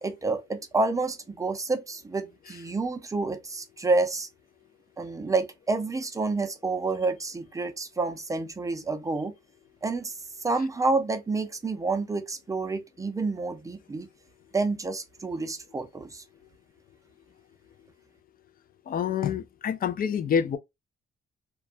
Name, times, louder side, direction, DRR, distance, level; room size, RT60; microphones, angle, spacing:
voice 1, 0.0-4.3 5.0-9.3 9.8-10.1 10.4-14.1 14.5-16.2, right 3 dB, 15° right, 0.5 m, -29 dB
voice 2, 18.9-20.6, left 7 dB, 45° left, 0.4 m, -27 dB
2.2 x 2.2 x 2.5 m
cardioid pair, 90°, 20 cm